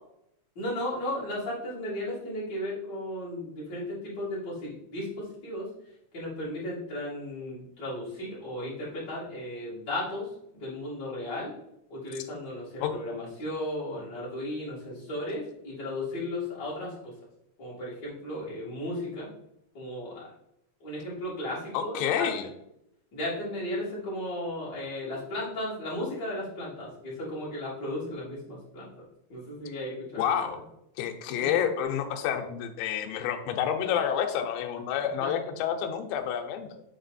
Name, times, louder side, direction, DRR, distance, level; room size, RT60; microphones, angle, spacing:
voice 1, 0.5-5.7 6.1-10.3 10.5-11.5 11.9-17.1 17.6-19.3 19.7-20.3 20.8-22.3 23.1-28.9 29.3-30.5 31.4-31.5 35.2-35.3, left 1 dB, 30° left, -9 dB, 2.7 m, -35 dB
voice 2, 21.7-22.5 30.2-30.6 31.0-36.8, left 9 dB, 80° left, 5 dB, 3.0 m, -29 dB
7.3 x 4.4 x 4.1 m, 0.80 s
omnidirectional pair, 5.1 m